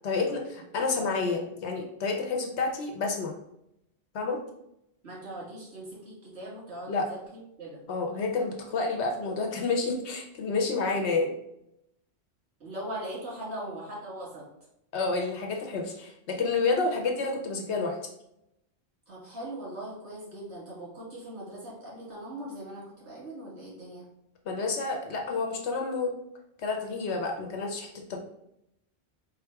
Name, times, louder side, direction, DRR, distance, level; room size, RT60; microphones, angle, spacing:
voice 1, 0.0-3.4 4.1-4.4 6.9-7.1 7.9-11.3 14.9-18.0 24.5-26.1 26.6-28.2, left 3 dB, 85° left, 2 dB, 1.0 m, -29 dB
voice 2, 5.0-7.2 7.6-7.8 12.6-14.5 19.1-24.1, right 1 dB, 80° right, -5 dB, 2.1 m, -40 dB
3.8 x 2.4 x 4.6 m, 0.80 s
omnidirectional pair, 1.1 m